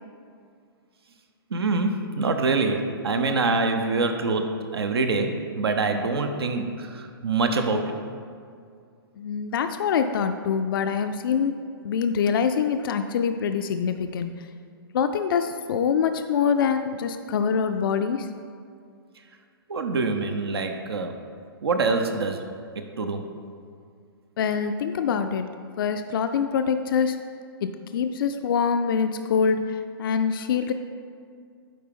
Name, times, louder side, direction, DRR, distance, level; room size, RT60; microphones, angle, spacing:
voice 1, 1.5-8.0 19.7-21.2 21.6-22.5 22.8-23.3, right 3 dB, 80° right, 6 dB, 0.7 m, -25 dB
voice 2, 9.2-11.6 11.8-14.5 14.9-18.3 24.4-27.2 27.6-30.7, left 6 dB, 65° left, 8 dB, 0.4 m, -25 dB
9.3 x 3.8 x 3.7 m, 2.3 s
hypercardioid pair, 130°, 13 cm